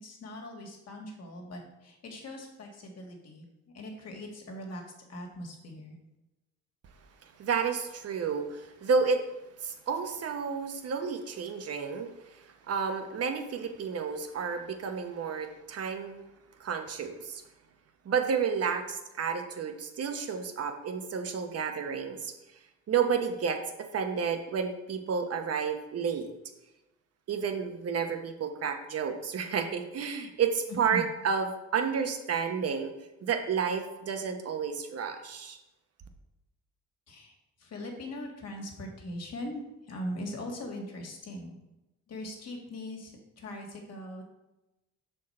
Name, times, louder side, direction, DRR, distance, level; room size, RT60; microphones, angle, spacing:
voice 1, 0.0-3.5 3.7-4.8 5.1-6.0 30.7-31.0 37.1-41.6 42.1-44.2, left 1 dB, 55° left, 1 dB, 1.7 m, -40 dB
voice 2, 7.2-9.2 9.6-16.2 16.6-17.4 18.0-22.3 22.9-26.3 27.3-31.5 31.7-32.9 33.2-35.6, right 6 dB, 55° right, 6 dB, 0.9 m, -31 dB
6.2 x 4.5 x 4.2 m, 0.98 s
cardioid pair, 90°, 30 cm